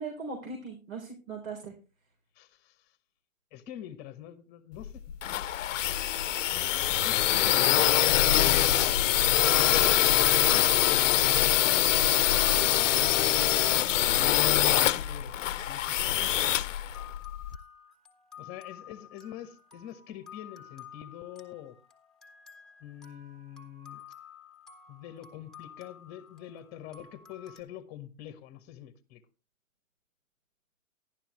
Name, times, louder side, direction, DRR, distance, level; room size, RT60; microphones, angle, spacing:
voice 1, 0.0-1.7 9.8-10.3, right 4 dB, 85° right, 3.9 m, -40 dB
voice 2, 2.3-2.9 3.5-5.2 5.5-5.8 6.9-8.9 9.3-11.0 11.4-15.4 15.7-16.6 18.4-21.8 22.8-24.0 24.9-29.2, left 11 dB, 25° left, 1.2 m, -45 dB
sound 1, 4.8-17.6, left 12 dB, 70° left, 0.7 m, -24 dB
sound 2, 16.9-27.6, left 8 dB, ahead, 1.4 m, -52 dB
12.0 x 11.5 x 3.1 m
hypercardioid pair, 145°, 39 cm